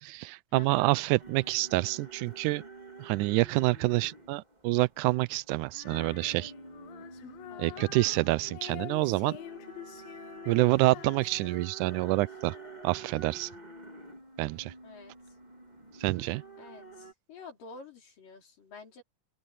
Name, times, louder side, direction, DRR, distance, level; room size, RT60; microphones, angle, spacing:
voice 1, 0.0-2.6 3.0-6.5 7.6-9.4 10.5-12.6 12.8-13.5 14.4-14.7 16.0-16.4, right 20 dB, 80° right, 1.9 m, -27 dB
voice 2, 0.5-1.0 7.5-8.0 14.8-15.1 16.6-19.0, left 4 dB, 75° left, 6.5 m, -49 dB
sound 1, 1.2-17.1, right 3 dB, 15° right, 2.4 m, -49 dB
Female singing, 5.7-13.1, left 13 dB, 90° left, 2.8 m, -47 dB
open air
omnidirectional pair, 3.9 m